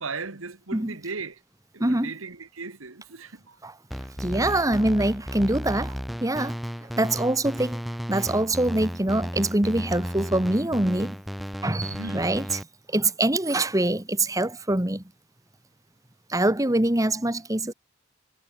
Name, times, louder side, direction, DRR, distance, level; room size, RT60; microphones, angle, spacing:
voice 1, 0.0-1.4 1.7-3.6 4.3-4.8 11.9-12.3, right 4 dB, 85° right, 2.0 m, -37 dB
voice 2, 1.8-2.1 3.6-3.7 4.2-6.6 6.8-7.8 8.1-11.2 11.6-12.6 12.9-15.0 16.3-17.7, right 1 dB, 15° right, 1.4 m, -24 dB
sound 1, 3.9-12.6, equal, ahead, 0.6 m, -34 dB
head